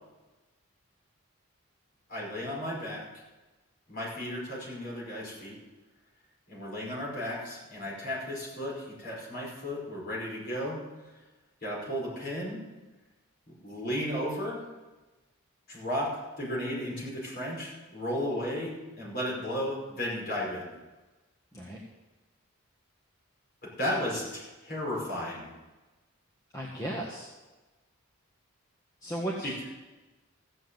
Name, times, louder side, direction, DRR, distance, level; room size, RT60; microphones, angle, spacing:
voice 1, 2.1-3.0 3.9-5.6 6.5-10.8 11.6-12.6 13.6-14.6 15.7-16.1 16.4-20.7 23.8-25.5, equal, 45° left, -4 dB, 5.4 m, -34 dB
voice 2, 26.5-27.3 29.0-29.5, right 1 dB, 15° left, -4 dB, 1.5 m, -35 dB
15.5 x 7.3 x 7.9 m, 1.2 s
head